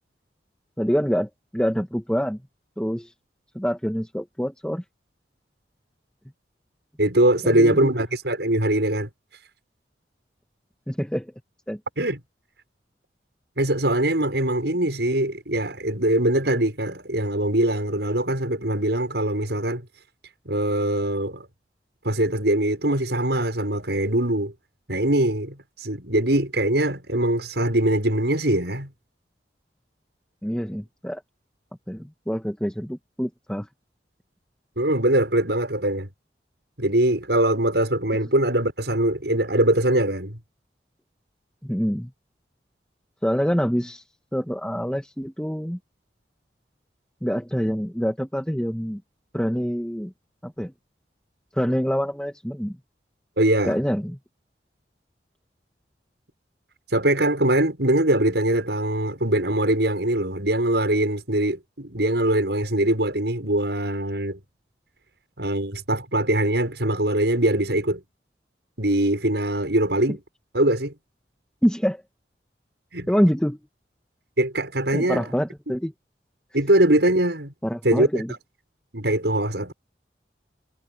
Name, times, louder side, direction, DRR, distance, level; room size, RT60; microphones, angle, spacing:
voice 1, 0.8-2.4 2.8-3.1 3.5-4.8 7.4-7.9 10.9-11.3 11.7-11.8 30.4-31.2 31.9-33.7 41.6-42.1 43.2-44.0 44.3-45.8 47.2-49.0 49.3-50.1 50.4-50.7 51.5-52.8 53.6-54.2 71.6-72.0 73.1-73.6 74.9-75.9 77.6-78.3, equal, 5° left, 1.8 m, -26 dB
voice 2, 7.0-9.1 12.0-12.2 13.6-19.8 20.4-21.4 22.0-24.5 24.9-28.9 34.8-36.1 36.8-40.4 53.4-53.8 56.9-64.4 65.4-68.0 68.8-70.2 70.5-70.9 72.9-73.1 74.4-75.2 76.5-77.5 77.8-78.2 78.9-79.7, right 1 dB, 75° right, 6.9 m, -22 dB
head